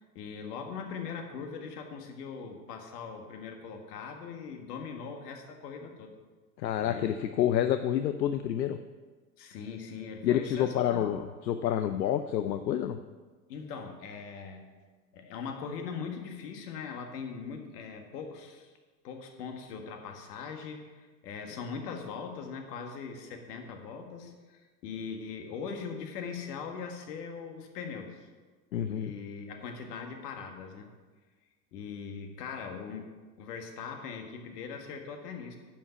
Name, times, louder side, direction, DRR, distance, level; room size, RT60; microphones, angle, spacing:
voice 1, 0.2-6.1 6.8-7.2 9.4-11.1 13.5-14.7 15.1-18.7 19.0-28.3 28.8-30.9 31.7-33.1 33.4-35.6, left 6 dB, 65° left, 4 dB, 1.7 m, -41 dB
voice 2, 6.6-8.8 10.2-13.0 28.7-29.1, left 10 dB, 85° left, 9 dB, 0.6 m, -28 dB
10.5 x 5.8 x 5.7 m, 1.4 s
hypercardioid pair, 90°, 50 cm